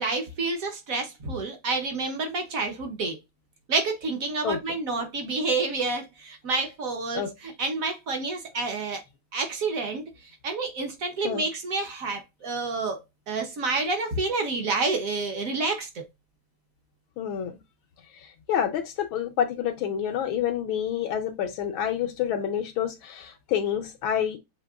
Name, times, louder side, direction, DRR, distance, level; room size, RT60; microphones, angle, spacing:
voice 1, 0.0-3.2 3.7-9.0 9.3-10.0 10.4-16.0, right 3 dB, 55° right, 1.0 m, -29 dB
voice 2, 4.4-4.8 7.1-7.3 11.2-11.5 17.2-17.5 18.1-24.4, left 9 dB, 75° left, 1.3 m, -28 dB
6.5 x 2.9 x 2.3 m
omnidirectional pair, 2.4 m